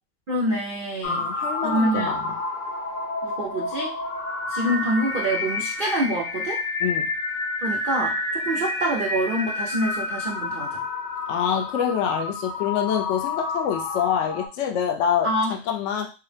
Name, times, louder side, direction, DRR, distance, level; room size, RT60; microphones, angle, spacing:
voice 1, 0.3-1.2 1.6-2.2 3.2-4.0 4.5-6.6 7.6-10.7 15.2-15.5, right 1 dB, 75° right, -3 dB, 0.4 m, -26 dB
voice 2, 1.0-2.4 6.8-7.1 11.3-16.1, left 8 dB, 75° left, 3 dB, 0.6 m, -26 dB
sound 1, 1.0-14.5, left 2 dB, 60° left, 1.0 m, -29 dB
4.6 x 2.0 x 3.2 m, 0.32 s
omnidirectional pair, 1.8 m